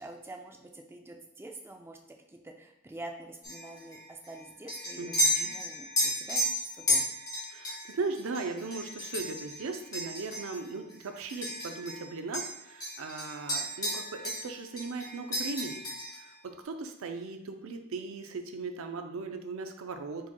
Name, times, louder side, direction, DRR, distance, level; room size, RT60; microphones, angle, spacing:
voice 1, 0.0-2.0 2.3-7.1, right 2 dB, 10° right, 3 dB, 0.4 m, -46 dB
sound 1, 3.4-12.1 12.3-14.5 14.8-16.3, left 1 dB, 20° left, 1.3 m, -33 dB
voice 2, 5.0-5.5 7.5-15.8 16.4-20.3, right 4 dB, 70° right, 6 dB, 0.5 m, -38 dB
4.7 x 4.2 x 2.2 m, 0.85 s
head